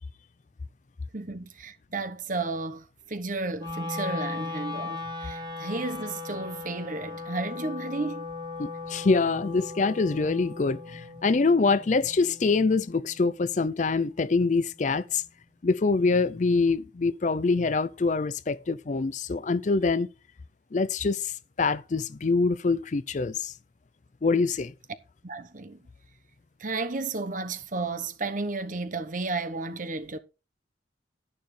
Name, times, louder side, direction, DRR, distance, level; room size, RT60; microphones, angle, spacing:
voice 1, 1.1-8.2 25.2-25.8 26.6-30.2, right 3 dB, 45° right, 1.0 m, -33 dB
Wind instrument woodwind instrument, 3.6-13.7, left 3 dB, 25° right, 1.4 m, -38 dB
voice 2, 8.6-15.2 15.6-20.1 20.7-23.5 24.2-24.7, left 4 dB, 40° left, 0.4 m, -25 dB
11.5 x 10.5 x 3.3 m
head